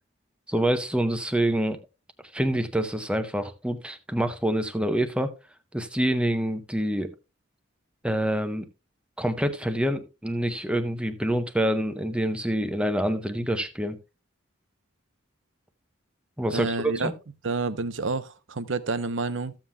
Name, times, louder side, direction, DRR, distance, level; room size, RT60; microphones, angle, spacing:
voice 1, 0.5-1.8 2.3-5.3 5.7-7.1 8.0-8.7 9.2-14.0 16.4-17.1, right 1 dB, 5° right, 0.7 m, -26 dB
voice 2, 16.5-17.1 17.4-19.5, right 3 dB, 65° right, 0.7 m, -29 dB
14.5 x 7.4 x 2.3 m
head